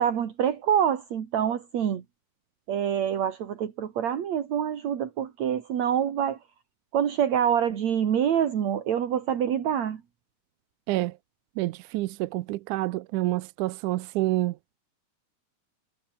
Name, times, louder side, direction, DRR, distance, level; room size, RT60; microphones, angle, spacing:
voice 1, 0.0-2.0 2.7-6.4 6.9-10.0, right 9 dB, 60° right, 3.1 m, -26 dB
voice 2, 11.6-14.6, right 18 dB, 80° right, 2.1 m, -28 dB
omnidirectional pair, 3.6 m